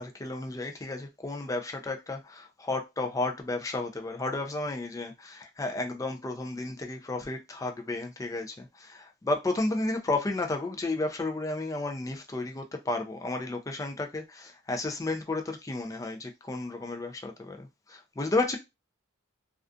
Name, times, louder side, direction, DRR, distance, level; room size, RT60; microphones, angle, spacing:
voice 1, 0.0-18.6, left 2 dB, 15° left, 0.3 m, -32 dB
2.3 x 2.3 x 2.4 m
head